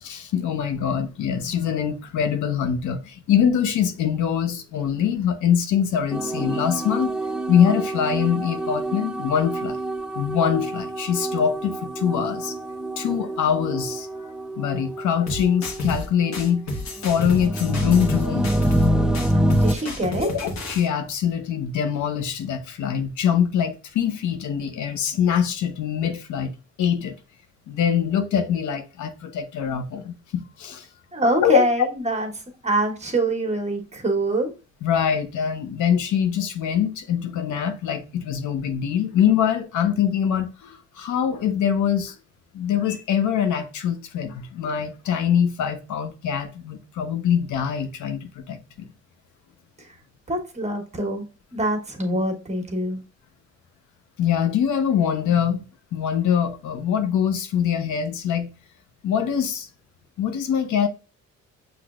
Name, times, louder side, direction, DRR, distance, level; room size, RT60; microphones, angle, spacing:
voice 1, 0.0-7.1 7.5-9.8 10.2-12.6 13.0-14.3 14.6-16.6 17.0-18.5 20.2-26.5 26.8-27.1 27.7-30.8 31.4-31.6 34.8-42.2 42.5-48.9 54.2-55.6 55.9-58.5 59.0-59.7 60.2-60.9, left 8 dB, 75° left, 0.8 m, -23 dB
sound 1, 6.1-15.9 16.2-19.8, right 1 dB, 5° right, 0.3 m, -26 dB
sound 2, 15.3-16.1 16.3-18.9 19.1-20.9, left 2 dB, 60° left, 1.4 m, -31 dB
voice 2, 19.6-20.3 31.1-32.3 32.6-34.5 50.3-51.2 51.5-53.0, right 1 dB, 20° right, 1.3 m, -24 dB
6.0 x 3.1 x 2.4 m
cardioid pair, 90°, 30 cm